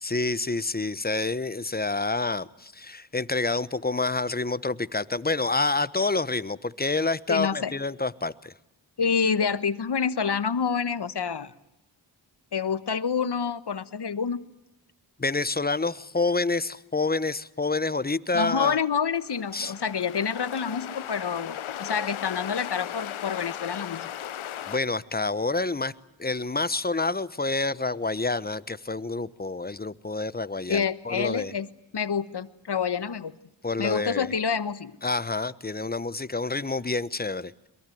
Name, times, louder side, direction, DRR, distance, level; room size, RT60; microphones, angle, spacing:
voice 1, 0.0-8.5 15.2-18.8 19.5-19.7 24.7-25.9 26.2-31.5 33.6-34.3 35.0-37.7, left 3 dB, 20° left, 17 dB, 1.0 m, -28 dB
voice 2, 7.3-7.7 9.0-11.5 12.5-14.5 18.3-24.1 30.7-31.7 31.9-33.3 33.8-35.0, left 6 dB, 55° left, 15 dB, 1.4 m, -27 dB
sound 1, 19.2-24.8, left 10 dB, 85° left, 1.0 m, -37 dB
22.5 x 22.0 x 9.3 m, 0.84 s
cardioid pair, 40°, 48 cm